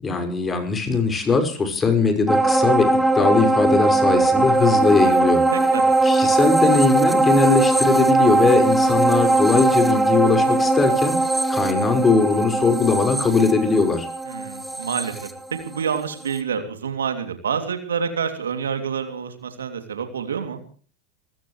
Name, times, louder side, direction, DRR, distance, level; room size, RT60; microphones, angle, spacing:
voice 1, 0.0-5.4 6.0-11.2 11.5-14.1, left 4 dB, 20° left, 6 dB, 5.7 m, -20 dB
sound 1, 2.3-16.0 16.4-16.5, right 2 dB, 5° right, 2.0 m, -20 dB
voice 2, 5.5-5.8 14.3-20.6, right 7 dB, 85° right, 7 dB, 2.9 m, -28 dB
27.5 x 15.5 x 3.3 m, 0.40 s
hypercardioid pair, 90°, 0 cm